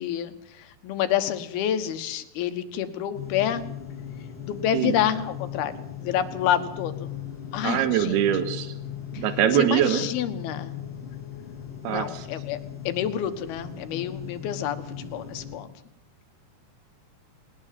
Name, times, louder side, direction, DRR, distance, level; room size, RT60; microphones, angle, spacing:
voice 1, 0.0-3.6 4.4-7.2 7.5-8.2 9.1-9.2 9.5-10.8 11.9-15.7, left 10 dB, 75° left, 8 dB, 3.2 m, -28 dB
sound 1, 3.1-15.6, left 9 dB, 40° left, 3.8 m, -38 dB
voice 2, 7.6-8.7 9.2-10.1 11.8-12.2, right 11 dB, 80° right, 9 dB, 3.4 m, -23 dB
20.0 x 19.0 x 7.6 m, 0.74 s
omnidirectional pair, 4.6 m